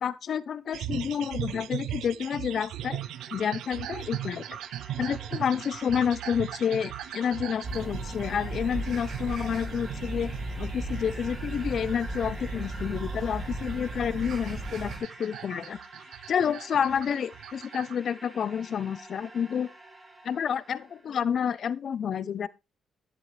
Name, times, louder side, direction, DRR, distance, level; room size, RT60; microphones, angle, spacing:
voice 1, 0.0-3.0 3.3-4.6 5.0-10.3 10.6-15.8 16.3-19.7 20.2-22.5, left 8 dB, 55° left, 0.9 m, -29 dB
sound 1, 0.7-18.0, right 12 dB, 85° right, 0.6 m, -39 dB
sound 2, 2.4-21.1, right 2 dB, 20° right, 4.6 m, -48 dB
sound 3, 7.6-15.0, right 2 dB, 65° right, 5.3 m, -36 dB
11.5 x 11.0 x 3.4 m
cardioid pair, 90°, 0 cm